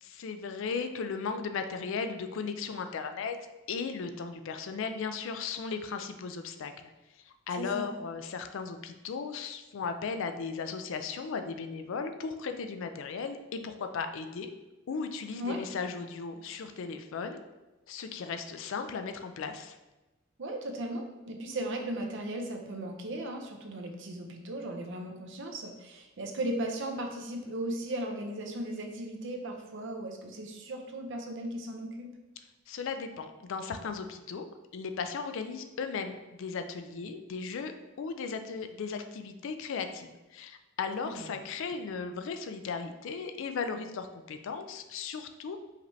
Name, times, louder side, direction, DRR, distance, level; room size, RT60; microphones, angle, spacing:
voice 1, 0.0-3.4 3.7-6.9 7.2-14.5 14.9-17.4 17.9-19.8 32.7-34.5 34.7-45.6, left 5 dB, 65° left, 8 dB, 0.4 m, -36 dB
voice 2, 7.6-7.9 15.4-15.6 20.4-32.1 41.1-41.3, right 1 dB, 65° right, 3 dB, 0.6 m, -37 dB
5.0 x 3.1 x 2.7 m, 1.1 s
head